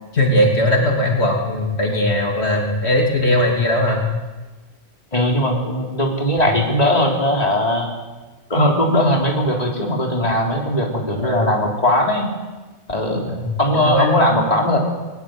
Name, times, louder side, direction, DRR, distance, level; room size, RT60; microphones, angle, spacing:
voice 1, 0.1-4.1 6.4-6.5 11.2-11.6 13.3-14.2, left 1 dB, 80° left, 0 dB, 3.3 m, -19 dB
voice 2, 5.1-7.9 8.5-12.3 12.9-13.2 13.6-14.8, left 1 dB, 35° left, 0 dB, 3.5 m, -19 dB
21.0 x 19.5 x 7.8 m, 1.3 s
omnidirectional pair, 1.1 m